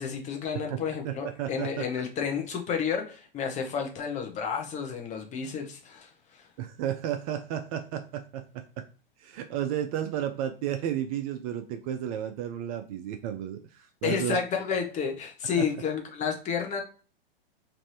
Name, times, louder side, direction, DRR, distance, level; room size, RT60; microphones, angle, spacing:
voice 1, 0.0-6.5 14.0-16.8, left 6 dB, 25° left, 3 dB, 0.7 m, -31 dB
voice 2, 1.0-1.8 6.6-8.8 9.2-14.4 15.6-15.7, right 10 dB, 40° right, 7 dB, 0.4 m, -33 dB
3.2 x 2.6 x 2.6 m, 0.37 s
hypercardioid pair, 115°, 30 cm